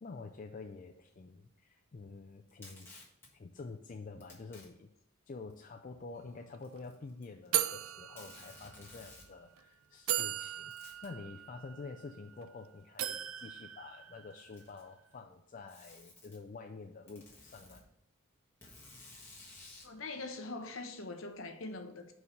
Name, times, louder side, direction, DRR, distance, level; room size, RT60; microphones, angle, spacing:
voice 1, 0.0-2.9 3.3-4.9 5.3-17.8, left 3 dB, 35° left, 0.3 m, -48 dB
Packing tape duct tape, 2.5-3.3 4.2-4.7 5.5-5.6 6.6-7.5 7.7-7.8 8.2-9.3 10.7-11.1 12.4-12.5 13.4-13.5 14.3-14.9 15.7-16.4 17.1-17.8 18.6-19.9, left 2 dB, 10° left, 1.4 m, -54 dB
sound 1, 6.2-6.3 6.5-6.8 7.5-8.9 9.6-9.7 10.1-12.5 13.0-14.6, right 12 dB, 65° right, 0.4 m, -38 dB
voice 2, 19.8-22.1, left 3 dB, 60° left, 0.9 m, -42 dB
5.4 x 4.7 x 6.4 m
head